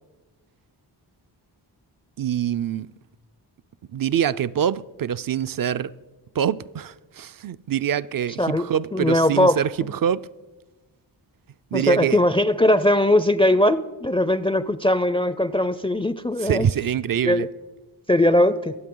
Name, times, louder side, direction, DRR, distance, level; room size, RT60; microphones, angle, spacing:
voice 1, 2.2-2.9 3.9-5.9 6.3-10.3 11.7-12.2 16.4-17.5, right 9 dB, 50° right, 0.4 m, -25 dB
voice 2, 8.4-9.9 11.7-16.7 17.2-17.5 18.1-18.8, left 1 dB, 15° left, 0.4 m, -20 dB
23.5 x 8.1 x 3.8 m
cardioid pair, 60°, 44 cm